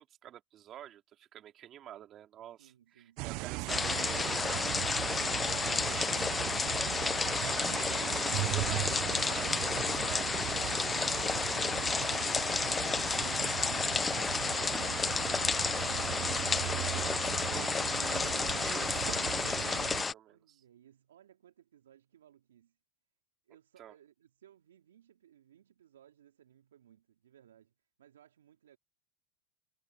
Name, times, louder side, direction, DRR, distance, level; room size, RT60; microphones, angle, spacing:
voice 1, 0.0-6.9 7.2-12.3 16.7-20.6 23.8-23.9, right 11 dB, 40° right, 3.0 m, -49 dB
voice 2, 2.6-3.4 20.3-22.8 23.4-28.8, right 10 dB, 85° right, 3.1 m, -62 dB
sound 1, 3.2-20.0, right 27 dB, 55° right, 0.4 m, -38 dB
sound 2, 3.7-20.1, left 4 dB, 20° left, 0.3 m, -32 dB
hypercardioid pair, 100°, 0 cm